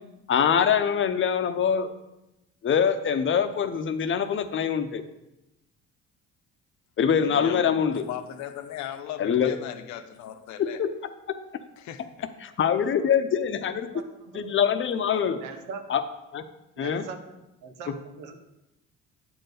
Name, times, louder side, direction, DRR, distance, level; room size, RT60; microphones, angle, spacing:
voice 1, 0.3-1.9 2.6-5.0 7.0-8.0 9.2-9.6 10.6-10.9 11.3-11.4 12.4-13.9 14.3-15.4 15.9-16.0 16.3-16.5 16.8-17.0, left 7 dB, 40° left, 9 dB, 0.8 m, -24 dB
voice 2, 7.2-10.8 11.8-12.0, left 11 dB, 70° left, 9 dB, 0.8 m, -37 dB
voice 3, 13.9-14.5 15.1-15.8 16.8-17.3 17.6-18.3, right 5 dB, 85° right, 7 dB, 1.1 m, -41 dB
8.7 x 4.5 x 6.6 m, 0.95 s
supercardioid pair, 85°, 30 cm